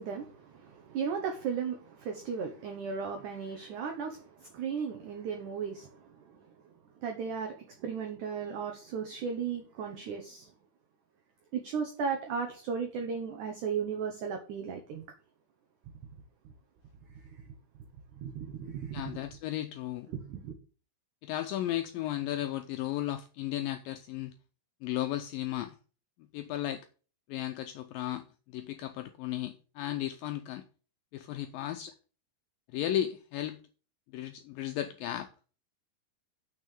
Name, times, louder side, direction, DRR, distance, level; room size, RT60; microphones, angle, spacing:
voice 1, 0.0-6.5 7.0-10.5 11.5-15.1 17.3-17.4 18.2-19.0 20.1-20.5, right 6 dB, 70° right, 2.0 m, -36 dB
voice 2, 18.9-20.1 21.2-24.3 24.8-25.8 26.3-26.9 27.3-30.7 31.1-31.9 32.7-33.6 34.1-35.3, left 12 dB, 85° left, 2.0 m, -35 dB
6.6 x 6.1 x 7.0 m
omnidirectional pair, 4.6 m